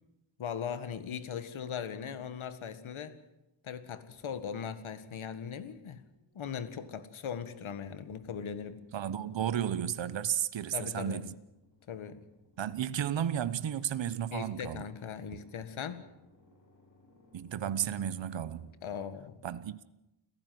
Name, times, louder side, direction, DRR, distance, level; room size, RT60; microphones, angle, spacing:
voice 1, 0.4-3.2 3.6-6.1 6.4-8.8 10.7-11.2 11.9-12.2 14.3-16.0 18.8-19.4, left 7 dB, 85° left, 1.8 m, -39 dB
sound 1, 5.5-7.2 7.9-9.6 10.6-19.1, left 2 dB, 40° left, 6.9 m, -64 dB
voice 2, 8.9-11.3 12.6-14.8 15.3-15.4 17.3-18.7 19.4-19.8, right 9 dB, 70° right, 1.1 m, -33 dB
29.0 x 15.0 x 7.7 m
wide cardioid pair, 95°, 47 cm